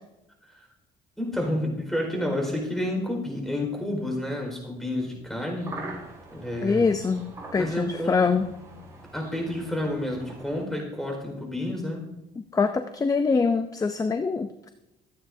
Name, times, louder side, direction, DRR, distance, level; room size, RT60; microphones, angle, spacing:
voice 1, 1.2-5.8 6.3-6.9 7.5-8.4 9.1-12.1, left 1 dB, ahead, 1 dB, 4.8 m, -30 dB
sound 1, 5.6-10.6, right 2 dB, 20° right, 5.8 m, -43 dB
voice 2, 6.6-8.5 12.5-14.7, left 4 dB, 20° left, 9 dB, 0.6 m, -24 dB
25.5 x 9.4 x 2.7 m, 0.94 s
cardioid pair, 110°, 17 cm